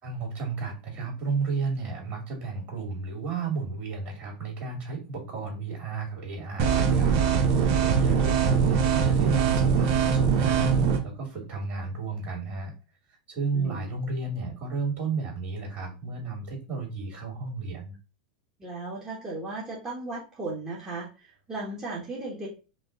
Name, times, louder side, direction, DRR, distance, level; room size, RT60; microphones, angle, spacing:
voice 1, 0.0-12.7 13.3-18.0, right 4 dB, 35° right, -1 dB, 2.4 m, -33 dB
sound 1, 6.6-11.0, right 6 dB, 50° right, 0.9 m, -22 dB
voice 2, 13.5-13.9 18.6-22.5, right 3 dB, 15° right, -6 dB, 1.4 m, -36 dB
5.2 x 2.3 x 3.8 m, 0.32 s
hypercardioid pair, 115°, 5 cm